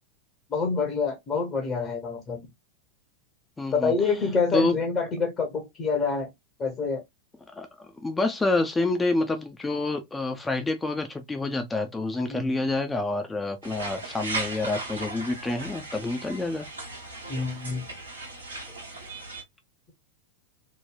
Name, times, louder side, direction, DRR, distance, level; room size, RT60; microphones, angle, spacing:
voice 1, 0.5-2.5 3.7-6.3 6.6-7.0 12.3-12.5 17.3-17.8, left 5 dB, 30° left, 0.8 m, -27 dB
voice 2, 3.6-3.9 4.5-4.7 7.5-16.7, left 2 dB, 10° left, 0.5 m, -28 dB
sound 1, 13.6-19.4, right 2 dB, 75° right, 1.0 m, -37 dB
3.0 x 2.2 x 2.2 m
figure-of-eight pair, 90°, 0 cm